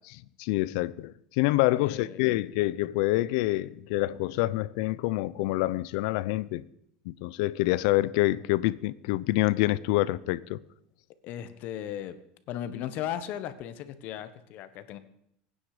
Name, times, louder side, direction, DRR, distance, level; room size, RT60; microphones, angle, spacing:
voice 1, 0.4-6.6 7.1-10.6, left 18 dB, 70° left, 0.7 m, -27 dB
voice 2, 1.8-2.3 11.2-12.2 12.5-15.0, left 10 dB, 50° left, 1.4 m, -36 dB
23.0 x 9.8 x 5.1 m
supercardioid pair, 130°, 4 cm